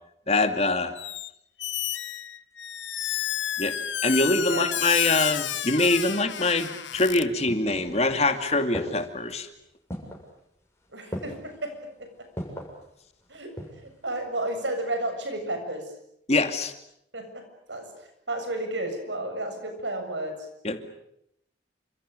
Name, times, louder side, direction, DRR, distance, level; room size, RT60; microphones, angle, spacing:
voice 1, 0.3-0.9 3.6-3.8 4.0-9.5 16.3-16.7 20.6-20.9, left 2 dB, 35° left, 7 dB, 2.4 m, -24 dB
Squeak, 1.0-1.3 1.6-7.2, left 11 dB, 90° left, 1.0 m, -31 dB
sound 1, 6.9-8.3 8.7-9.3 9.9-10.3 11.1-11.6 12.4-12.8 13.3-13.9 14.2-14.3, equal, 15° left, 7.0 m, -37 dB
voice 2, 10.9-11.7 12.0-12.1 13.3-13.5 13.8-15.9 17.1-17.4 17.7-20.4, right 1 dB, 80° right, 6 dB, 7.5 m, -32 dB
29.0 x 27.0 x 6.9 m, 0.77 s
head